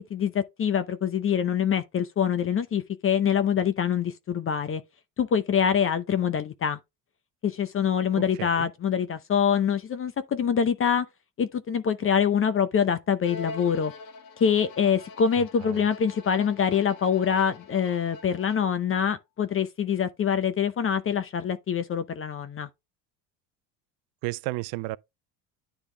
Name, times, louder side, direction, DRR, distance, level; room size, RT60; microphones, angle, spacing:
voice 1, 0.0-4.8 5.2-6.8 7.4-11.1 11.4-13.9 14.4-22.7, left 7 dB, 35° left, 0.7 m, -25 dB
Bowed string instrument, 13.2-18.9, left 3 dB, 70° left, 1.8 m, -44 dB
voice 2, 15.4-15.8 24.2-25.0, right 21 dB, 85° right, 0.5 m, -33 dB
10.0 x 3.4 x 3.3 m
supercardioid pair, 100°, 40 cm